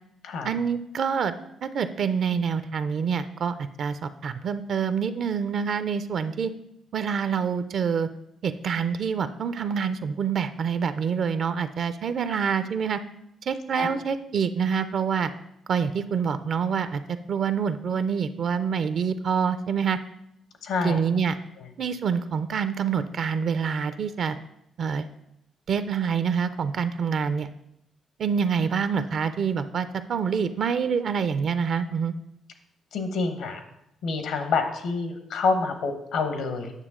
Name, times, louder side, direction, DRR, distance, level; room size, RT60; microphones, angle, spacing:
voice 1, 0.4-1.3 1.6-6.5 6.9-8.1 8.4-13.0 13.5-15.3 15.7-17.0 17.3-20.0 20.8-21.4 21.8-24.4 24.8-25.1 25.7-27.5 28.2-32.1, right 6 dB, 60° right, 11 dB, 0.5 m, -26 dB
voice 2, 20.6-21.0 21.6-21.7 32.9-33.6 34.0-36.7, left 4 dB, 80° left, 6 dB, 1.2 m, -27 dB
9.0 x 6.5 x 3.7 m, 0.79 s
cardioid pair, 90°, 0 cm